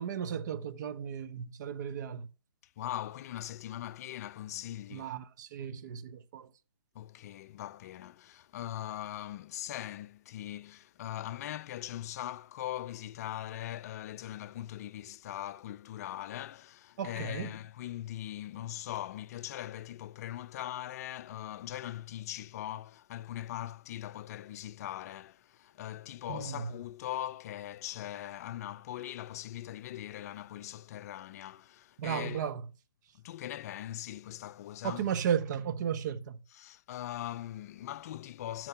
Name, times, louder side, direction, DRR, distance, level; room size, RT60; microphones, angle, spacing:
voice 1, 0.0-2.3 4.9-6.5 17.0-17.6 26.3-26.7 32.0-32.7 34.8-36.4, right 8 dB, 50° right, 0.8 m, -35 dB
voice 2, 2.8-5.1 6.9-32.4 33.1-35.1 36.6-38.7, left 12 dB, 40° left, 0.4 m, -41 dB
12.0 x 4.5 x 5.7 m
hypercardioid pair, 135°, 13 cm